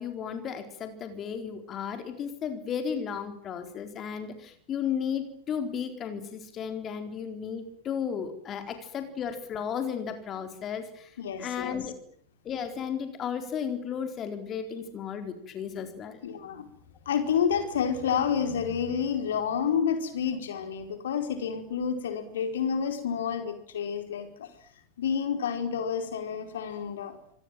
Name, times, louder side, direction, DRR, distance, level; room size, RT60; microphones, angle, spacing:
voice 1, 0.0-12.0 12.4-16.2, left 7 dB, 30° left, 7 dB, 4.1 m, -34 dB
voice 2, 11.2-11.8 16.2-16.7 17.0-24.5 25.0-27.3, left 7 dB, 60° left, 7 dB, 4.7 m, -29 dB
26.5 x 20.0 x 9.2 m, 0.66 s
figure-of-eight pair, 90°, 0 cm